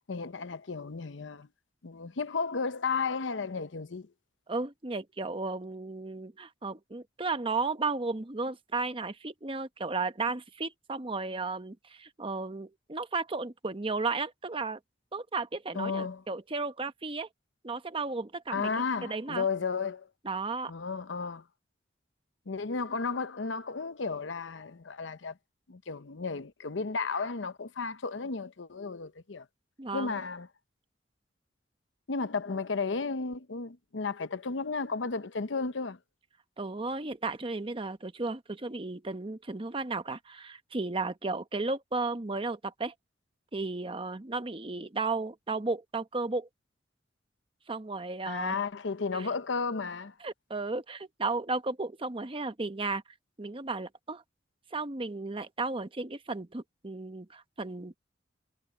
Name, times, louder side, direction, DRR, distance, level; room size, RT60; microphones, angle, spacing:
voice 1, 0.1-1.5 1.8-4.1 15.7-16.2 18.5-20.1 20.7-21.4 22.5-25.4 25.7-29.5 29.9-30.5 32.1-36.0 48.3-50.1, left 4 dB, 90° left, 0.8 m, -33 dB
voice 2, 4.5-14.8 15.1-17.3 17.6-18.7 19.0-19.4 20.2-20.7 29.8-30.2 36.6-42.9 43.5-46.5 47.7-48.5 49.1-49.3 50.2-53.0 53.4-54.2 54.7-58.0, right 3 dB, 30° right, 1.0 m, -34 dB
head